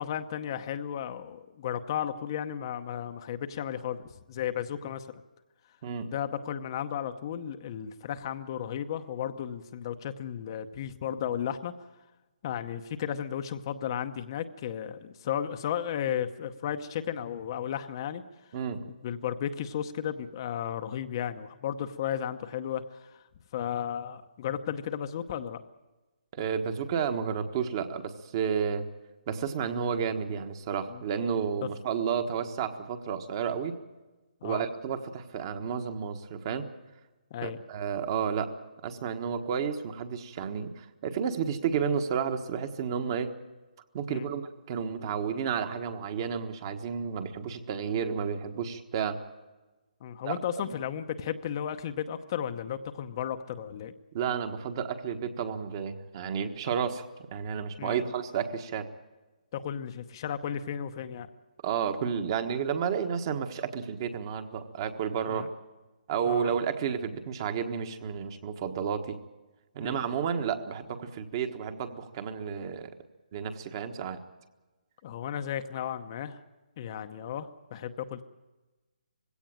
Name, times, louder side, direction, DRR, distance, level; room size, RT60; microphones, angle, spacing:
voice 1, 0.0-4.0 4.3-5.1 6.1-11.7 12.4-18.2 19.0-23.2 23.5-25.6 30.9-31.0 34.4-34.6 37.3-37.6 44.1-44.3 50.0-53.9 57.8-58.1 59.5-61.3 65.3-65.5 66.2-66.5 69.8-70.0 75.0-76.4 76.8-78.2, left 9 dB, 30° left, 8 dB, 0.8 m, -34 dB
voice 2, 26.3-28.9 29.3-33.7 34.4-36.6 37.4-38.5 38.8-43.3 43.9-49.2 50.2-50.4 50.6-50.7 54.1-57.0 57.3-58.9 61.6-65.5 66.1-69.2 69.7-72.9 73.3-74.2, right 7 dB, 30° right, 8 dB, 1.4 m, -31 dB
20.5 x 17.0 x 9.0 m, 1.2 s
hypercardioid pair, 165°, 5 cm